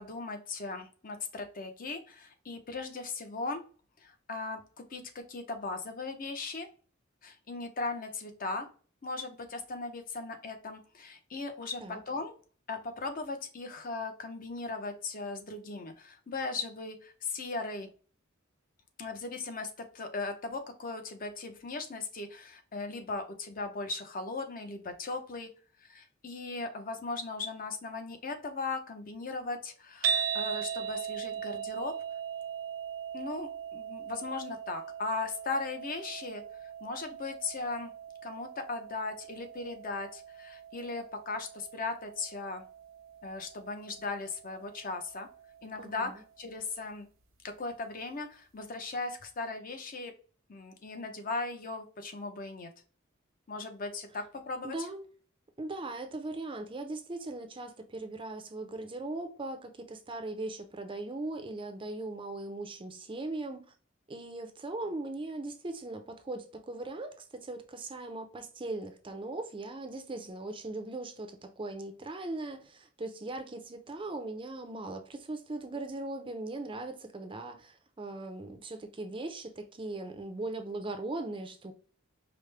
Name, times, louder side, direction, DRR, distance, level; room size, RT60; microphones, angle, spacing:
voice 1, 0.0-3.6 4.0-6.7 7.2-8.7 9.0-12.3 12.7-17.9 19.0-25.5 25.8-31.9 33.1-36.4 36.8-37.9 38.2-42.6 43.2-45.3 45.6-47.1 47.4-50.1 50.5-52.7 53.5-54.9, left 3 dB, 45° left, 0.7 m, -38 dB
sound 1, 30.0-46.3, right 7 dB, 75° right, 0.5 m, -39 dB
voice 2, 45.8-46.2 54.6-55.1 55.6-63.6 64.1-81.7, right 2 dB, 25° right, 0.5 m, -39 dB
4.9 x 2.1 x 3.2 m
head